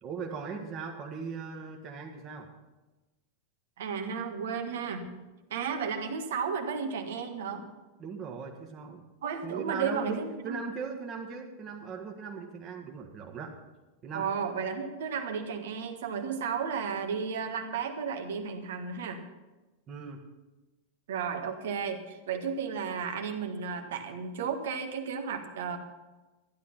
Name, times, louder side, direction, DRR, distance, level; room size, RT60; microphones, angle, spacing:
voice 1, 0.0-2.5 8.0-9.1 9.4-13.6 14.0-14.3 19.9-20.2, right 5 dB, 30° right, 1 dB, 1.8 m, -39 dB
voice 2, 3.8-7.6 9.2-10.6 14.1-19.2 21.1-25.8, right 6 dB, 60° right, 6 dB, 1.6 m, -33 dB
14.5 x 11.5 x 5.7 m, 1.1 s
figure-of-eight pair, 90°, 0 cm